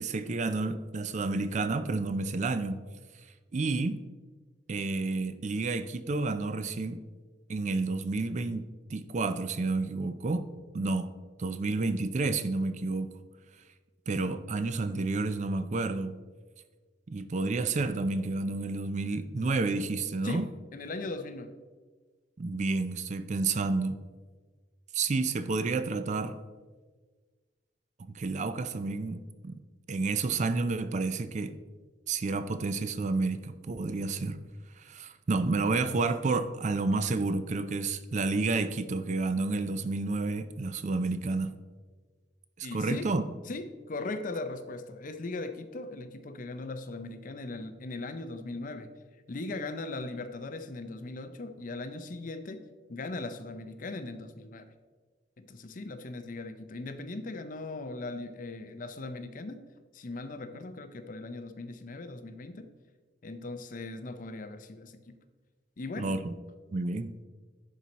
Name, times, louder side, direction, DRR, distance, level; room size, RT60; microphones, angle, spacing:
voice 1, 0.0-2.8 3.5-4.1 4.7-7.1 7.5-11.1 11.4-13.1 14.1-16.2 17.1-20.5 22.4-24.0 24.9-26.4 28.0-29.6 29.9-31.6 32.1-34.4 34.8-41.6 42.6-43.2 66.0-66.3 66.7-67.1, right 3 dB, 40° right, 12 dB, 0.4 m, -30 dB
voice 2, 20.7-21.5 42.6-43.1 43.5-48.9 49.3-52.6 52.9-54.7 55.4-59.6 59.9-62.7 63.2-65.2 65.8-66.2, left 2 dB, 45° left, 9 dB, 0.5 m, -39 dB
11.0 x 4.3 x 4.0 m, 1.4 s
head